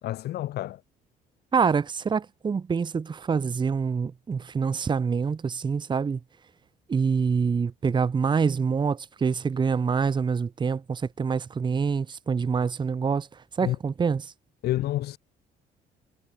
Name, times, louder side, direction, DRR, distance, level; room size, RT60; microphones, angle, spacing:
voice 1, 0.0-0.8 13.6-13.8 14.6-15.2, left 14 dB, 70° left, 3.5 m, -29 dB
voice 2, 1.5-6.2 6.9-13.3 13.6-14.3, right 5 dB, 25° right, 1.1 m, -26 dB
cardioid pair, 110°, 17 cm